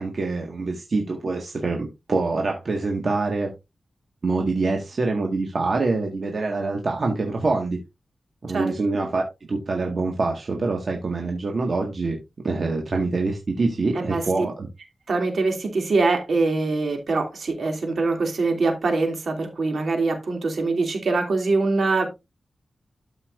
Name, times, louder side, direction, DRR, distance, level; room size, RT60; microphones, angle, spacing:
voice 1, 0.0-3.5 4.2-7.8 8.4-12.2 12.4-14.7, right 3 dB, 50° right, 1.7 m, -25 dB
voice 2, 13.9-14.5 15.1-22.1, right 3 dB, 70° right, 2.6 m, -23 dB
12.5 x 5.7 x 2.5 m
wide cardioid pair, 125°, 0 cm